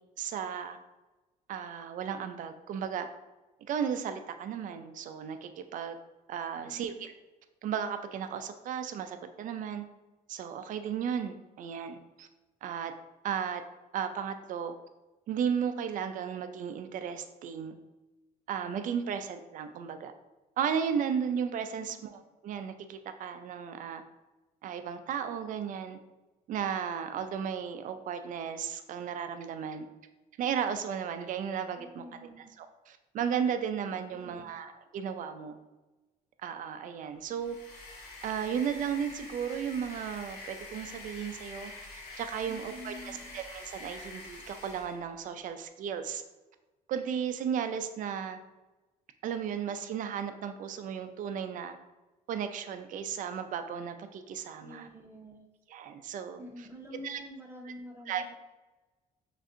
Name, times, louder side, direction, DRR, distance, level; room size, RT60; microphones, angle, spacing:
voice 1, 0.2-0.8 1.5-3.1 3.7-6.0 6.3-7.1 7.6-9.8 10.3-12.3 12.6-12.9 13.2-13.6 13.9-14.7 15.3-17.8 18.5-20.1 20.6-24.0 24.6-26.0 26.5-29.9 30.4-35.6 36.4-37.6 38.2-46.2 46.9-48.4 49.2-51.8 52.3-54.9 55.7-56.7 57.0-57.2 57.7-57.8 58.1-58.2, right 7 dB, 50° right, 8 dB, 0.4 m, -35 dB
voice 2, 6.6-7.0 21.8-21.9 31.8-32.5 34.1-34.5 42.5-43.3 54.6-55.5 56.4-58.3, equal, 15° right, 1 dB, 0.7 m, -47 dB
sound 1, 37.3-45.0, left 2 dB, 70° left, 1.4 m, -46 dB
6.2 x 2.5 x 2.6 m, 1.1 s
cardioid pair, 110°, 17 cm